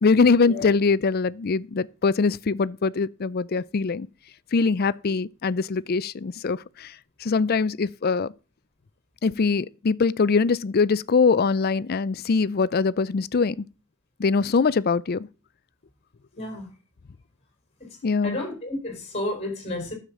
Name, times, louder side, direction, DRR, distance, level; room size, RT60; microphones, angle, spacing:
voice 1, 0.0-4.1 4.5-6.9 7.2-8.3 9.2-13.6 14.2-15.3 18.0-18.4, left 4 dB, 45° left, 0.4 m, -22 dB
voice 2, 16.4-16.7 18.2-19.9, left 1 dB, 30° left, 4.5 m, -31 dB
10.0 x 7.2 x 6.1 m
head